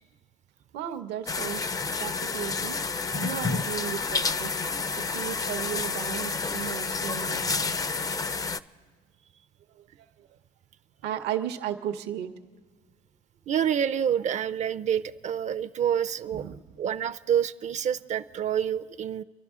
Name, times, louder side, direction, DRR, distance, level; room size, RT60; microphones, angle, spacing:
voice 1, 0.7-4.5 5.0-7.7 9.7-10.3 11.0-12.4 16.3-16.8, right 10 dB, 85° right, 8 dB, 0.8 m, -35 dB
sound 1, 1.3-8.6, left 4 dB, 20° left, 0.4 m, -29 dB
voice 2, 13.5-16.4 16.8-19.2, right 9 dB, 45° right, 15 dB, 0.4 m, -27 dB
29.0 x 11.5 x 3.6 m, 1.5 s
cardioid pair, 110°, 17 cm